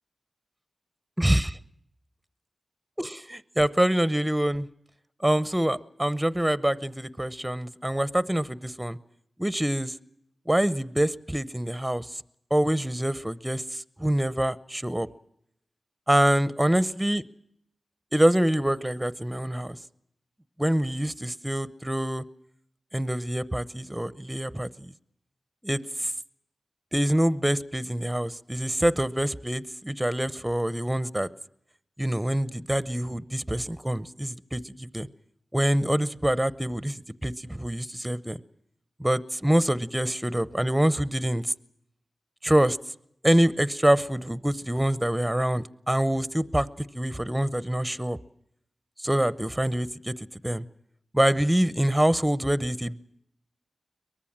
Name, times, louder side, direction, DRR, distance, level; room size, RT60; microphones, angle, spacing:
voice 1, 1.2-1.6 3.0-4.7 5.2-9.0 9.4-9.9 10.5-12.2 12.5-15.1 16.1-17.2 18.1-19.8 20.6-22.2 22.9-24.9 25.6-26.1 26.9-31.3 32.0-35.1 35.5-38.4 39.0-41.5 42.4-42.8 43.2-48.2 49.0-50.1 50.4-50.6 51.1-53.0, right 1 dB, 10° right, 15 dB, 0.8 m, -25 dB
23.0 x 20.0 x 7.4 m, 0.74 s
wide cardioid pair, 75°, 0 cm